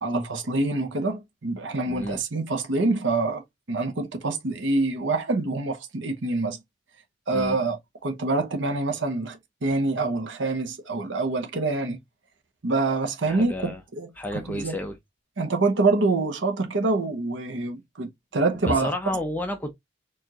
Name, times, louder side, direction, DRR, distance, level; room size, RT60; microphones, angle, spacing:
voice 1, 0.0-3.4 3.7-6.6 7.3-12.0 12.6-14.1 14.5-14.8 15.4-18.9, right 3 dB, 75° right, 0.9 m, -26 dB
voice 2, 1.9-2.2 7.3-7.6 13.2-13.8 14.2-15.0 18.6-19.7, left 1 dB, 10° left, 0.5 m, -31 dB
4.6 x 2.5 x 2.9 m
head